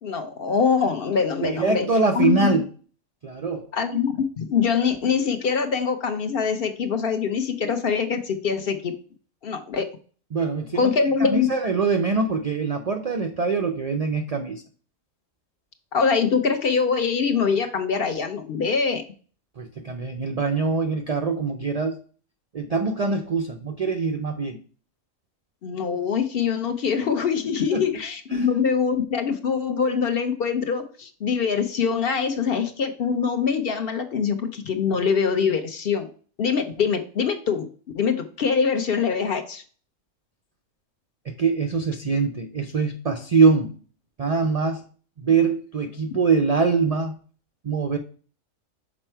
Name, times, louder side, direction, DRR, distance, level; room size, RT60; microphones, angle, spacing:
voice 1, 0.0-1.9 2.1-2.6 3.7-8.9 9.4-9.9 10.8-11.5 15.9-19.0 25.6-36.1 36.4-37.7 37.9-39.6, left 6 dB, 55° left, 7 dB, 0.8 m, -23 dB
voice 2, 1.4-2.7 3.2-3.7 10.3-10.9 11.2-14.6 19.6-22.0 22.5-24.6 27.7-27.8 28.3-28.5 41.3-43.7 44.2-44.8 45.2-47.1 47.6-48.0, right 4 dB, 70° right, 5 dB, 0.3 m, -23 dB
6.1 x 4.4 x 4.4 m, 0.42 s
omnidirectional pair, 1.4 m